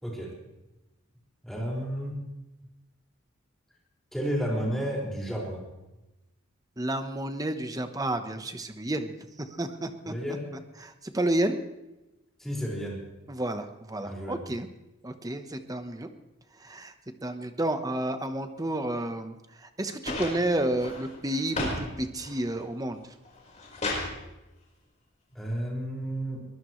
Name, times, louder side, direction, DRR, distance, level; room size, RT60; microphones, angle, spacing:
voice 1, 0.0-0.3 1.4-2.2 4.1-5.7 10.1-10.5 12.4-13.0 14.0-14.4 25.3-26.4, equal, ahead, -4 dB, 5.4 m, -32 dB
voice 2, 6.8-10.1 10.8-11.6 13.3-14.7 15.0-16.1 16.6-16.9 17.2-23.0, right 1 dB, 20° right, 8 dB, 1.1 m, -31 dB
sound 1, 20.0-21.8 22.2-22.7 23.2-24.1 25.3-25.4, left 2 dB, 35° left, 4.8 m, -34 dB
23.0 x 19.5 x 3.2 m, 1.0 s
head